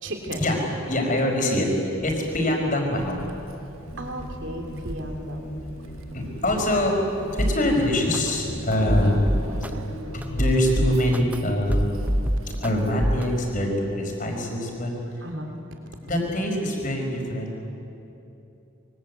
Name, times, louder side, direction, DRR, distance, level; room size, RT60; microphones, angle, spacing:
voice 1, 0.0-0.4 4.0-5.6 8.8-9.3 15.2-15.6, right 1 dB, 60° right, 3 dB, 3.4 m, -35 dB
voice 2, 0.9-3.2 6.1-9.3 9.6-9.7 10.1-12.0 12.6-14.9 16.0-17.7, left 1 dB, 40° left, 1 dB, 5.1 m, -24 dB
Keys jangling, 3.0-13.5, right 1 dB, 85° right, 1.5 m, -42 dB
sound 1, 3.8-11.5, equal, 80° left, 5.2 m, -38 dB
sound 2, 7.4-7.6 8.1-8.2 8.7-9.7 10.2-11.4 11.7-12.7 13.0-13.2, equal, 5° right, 0.7 m, -23 dB
26.0 x 23.5 x 8.4 m, 2.9 s
head